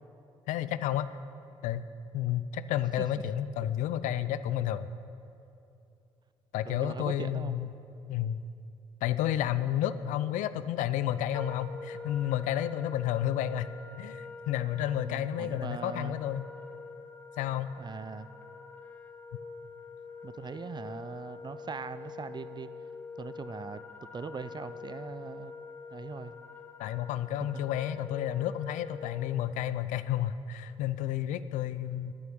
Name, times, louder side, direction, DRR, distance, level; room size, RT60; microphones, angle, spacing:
voice 1, 0.5-1.1 1.6-1.8 2.1-4.9 6.5-7.7 8.1-8.4 9.0-13.7 14.0-16.4 17.4-17.7 26.8-32.1, left 11 dB, 65° left, 14 dB, 0.5 m, -31 dB
voice 2, 6.6-7.6 15.0-16.2 17.8-18.3 20.2-22.7 23.2-23.8 24.1-25.5 25.9-26.3 27.5-27.6, right 5 dB, 30° right, 13 dB, 0.7 m, -40 dB
Wind instrument woodwind instrument, 11.3-29.4, left 4 dB, 10° left, 1.5 m, -46 dB
11.0 x 9.2 x 7.1 m, 2.7 s
hypercardioid pair, 45°, 14 cm